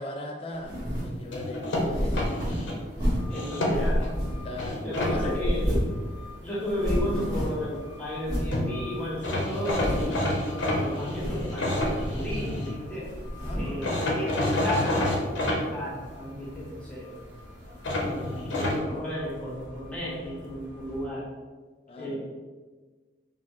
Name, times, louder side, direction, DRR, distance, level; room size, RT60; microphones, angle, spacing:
voice 1, 0.0-2.2 2.5-2.8 3.5-3.7 4.4-5.4 13.4-13.7 21.9-22.1, left 1 dB, 30° left, 2 dB, 0.4 m, -38 dB
sound 1, 0.6-1.2 1.7-3.4 3.7-4.7 5.0-6.0 6.3-6.4 6.6-7.7 8.2-8.6 9.1-9.2 9.6-10.2 11.0-11.5 11.8-12.7 13.0-13.8, equal, 20° right, 1.2 m, -30 dB
sound 2, 1.3-2.8 3.3-4.1 4.6-5.1 8.2-8.3 8.5-8.7 9.2-12.7 13.8-15.6 17.8-18.8, left 1 dB, 85° left, 0.7 m, -28 dB
sound 3, 2.2-21.0, left 1 dB, 85° right, 0.9 m, -46 dB
voice 2, 3.3-4.1 4.8-5.8 6.4-10.2 10.7-13.1 13.5-15.2 15.6-17.1 18.1-21.2 22.0-22.1, left 1 dB, 5° left, -8 dB, 1.0 m, -33 dB
4.1 x 2.4 x 3.0 m, 1.4 s
head